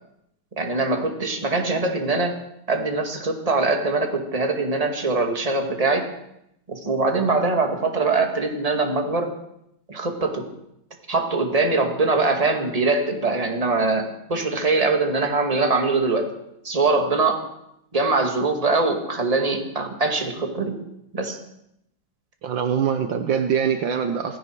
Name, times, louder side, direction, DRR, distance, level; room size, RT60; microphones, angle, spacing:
voice 1, 0.6-2.3 2.7-6.0 6.7-9.3 9.9-10.5 11.1-16.3 16.6-17.4 17.9-20.8 21.1-21.4, right 3 dB, 20° right, 3 dB, 2.0 m, -22 dB
voice 2, 22.4-24.4, right 7 dB, 65° right, 7 dB, 1.6 m, -23 dB
18.0 x 16.5 x 4.6 m, 0.78 s
omnidirectional pair, 2.3 m